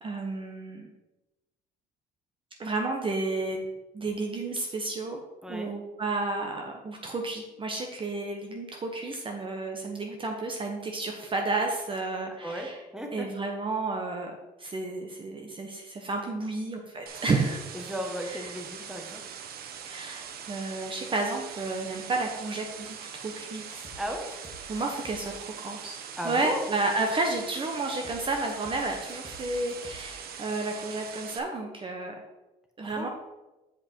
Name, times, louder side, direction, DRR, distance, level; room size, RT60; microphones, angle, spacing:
voice 1, 0.0-0.9 2.6-3.6 3.9-5.2 5.5-12.7 13.1-14.3 14.6-17.6 19.8-23.9 24.7-26.0 26.2-32.2 32.8-33.1, right 3 dB, 30° right, 2 dB, 1.0 m, -31 dB
voice 2, 5.4-5.7 12.4-13.3 17.7-19.2 23.9-24.3 26.2-26.7 32.8-33.1, equal, 5° right, 3 dB, 1.3 m, -35 dB
sound 1, 17.1-31.4, right 7 dB, 65° right, 0.9 m, -42 dB
sound 2, 23.7-24.0 24.3-25.2 28.0-28.2 28.5-28.8 29.1-30.0, left 2 dB, 15° left, 1.8 m, -48 dB
7.8 x 5.3 x 4.5 m, 1.0 s
cardioid pair, 110°, 17 cm